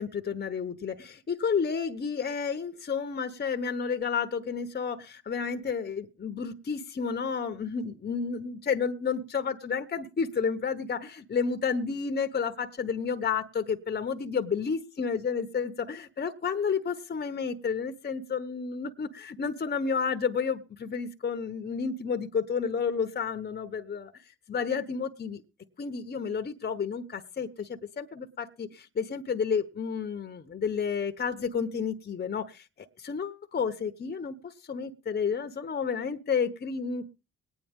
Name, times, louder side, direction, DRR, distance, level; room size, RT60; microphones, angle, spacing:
voice 1, 0.0-24.1 24.5-25.4 25.8-37.1, left 6 dB, 35° left, 8 dB, 1.1 m, -31 dB
21.5 x 9.3 x 3.7 m, 0.31 s
cardioid pair, 90°, 30 cm